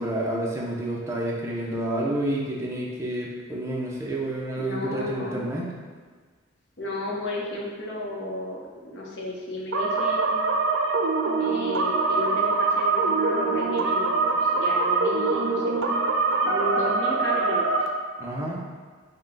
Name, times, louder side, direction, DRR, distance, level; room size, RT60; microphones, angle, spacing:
voice 1, 0.0-5.7 18.2-18.6, right 1 dB, 15° right, -4 dB, 0.6 m, -29 dB
voice 2, 4.6-5.5 6.8-10.4 11.4-15.8 16.4-17.8, left 1 dB, 60° left, -3 dB, 0.8 m, -33 dB
sound 1, 9.7-17.9, right 3 dB, 80° right, 0.4 m, -24 dB
5.5 x 2.2 x 3.9 m, 1.5 s
head